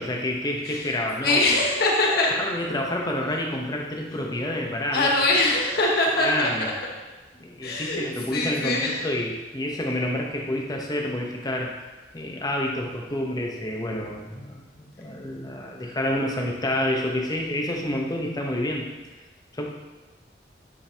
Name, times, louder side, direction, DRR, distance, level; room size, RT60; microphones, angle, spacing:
voice 1, 0.0-1.4 2.1-5.1 6.2-6.7 7.3-11.7 12.1-18.9 19.5-19.7, left 1 dB, 20° left, 0 dB, 0.9 m, -28 dB
voice 2, 1.2-2.3 4.9-6.7 7.6-8.0 8.3-9.0, left 2 dB, 60° left, -2 dB, 1.3 m, -22 dB
8.7 x 5.2 x 2.8 m, 1.2 s
head